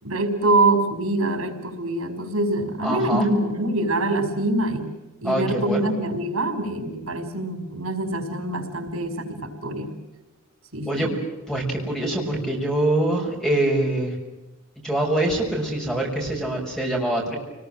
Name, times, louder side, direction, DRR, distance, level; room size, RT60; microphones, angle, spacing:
voice 1, 0.0-4.9 5.2-9.9 10.7-11.1, right 2 dB, 80° right, 7 dB, 5.4 m, -24 dB
voice 2, 2.8-3.3 5.2-5.9 10.9-11.1 11.5-14.2 14.8-17.4, right 1 dB, 5° left, 0 dB, 6.0 m, -24 dB
29.5 x 20.5 x 7.7 m, 1.1 s
head